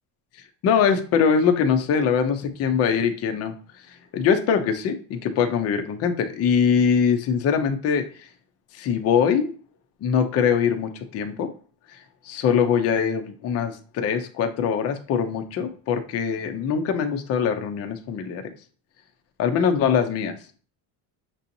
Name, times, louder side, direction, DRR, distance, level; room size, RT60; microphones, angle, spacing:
voice 1, 0.6-3.5 4.1-8.1 8.7-9.5 10.0-11.5 12.3-18.4 19.4-20.3, left 7 dB, 35° left, 6 dB, 0.5 m, -22 dB
6.1 x 2.8 x 2.6 m, 0.40 s
cardioid pair, 170°, 44 cm